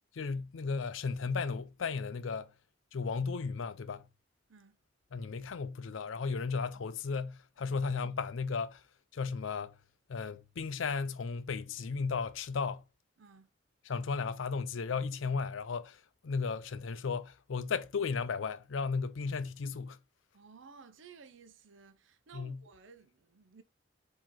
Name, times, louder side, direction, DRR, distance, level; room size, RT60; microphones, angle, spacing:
voice 1, 0.1-2.5 2.9-4.0 5.1-8.8 9.1-9.7 10.1-12.8 13.8-20.0 22.3-22.6, left 5 dB, 90° left, 0.5 m, -35 dB
voice 2, 13.2-13.5 20.3-23.6, right 5 dB, 80° right, 0.6 m, -56 dB
4.8 x 2.9 x 3.7 m
head